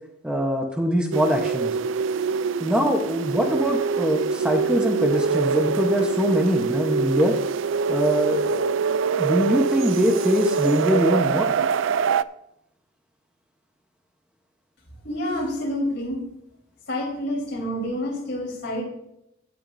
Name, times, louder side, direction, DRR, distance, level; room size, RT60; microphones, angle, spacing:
voice 1, 0.2-1.8 2.6-7.3 7.9-8.7 9.2-11.5, equal, 5° right, 2 dB, 1.0 m, -23 dB
sound 1, 1.1-12.2, right 6 dB, 70° right, 0.4 m, -24 dB
voice 2, 15.0-16.2 16.9-18.8, left 1 dB, 60° left, -1 dB, 4.1 m, -28 dB
17.0 x 9.3 x 2.7 m, 0.81 s
head